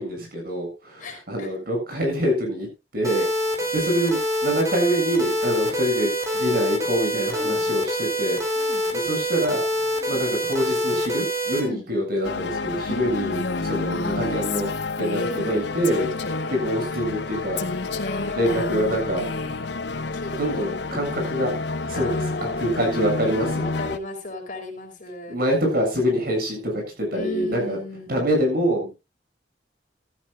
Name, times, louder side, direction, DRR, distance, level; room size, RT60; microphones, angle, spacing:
voice 1, 0.0-2.7 2.9-8.4 8.9-14.7 14.9-16.2 16.5-17.6 18.3-19.3 20.4-21.5 21.8-23.7 25.3-27.8 28.1-28.9, equal, 60° right, 3 dB, 7.5 m, -25 dB
voice 2, 1.0-1.5 3.2-3.3 5.6-5.8 7.3-7.6 8.6-8.9 9.9-10.2 11.6-11.9 12.9-13.1 15.1-16.6 18.1-18.7 20.1-20.8 21.1-21.3 21.9-25.4 27.1-28.3, left 1 dB, 50° left, 3 dB, 4.4 m, -36 dB
sound 1, 3.0-11.6, equal, 20° right, 4.1 m, -25 dB
sound 2, 12.2-24.0, left 3 dB, 70° left, 0.8 m, -30 dB
Female speech woman speaking, 13.3-15.6 15.8-16.6 17.6-19.7, left 3 dB, 90° left, 1.8 m, -32 dB
15.0 x 14.5 x 2.5 m, 0.27 s
head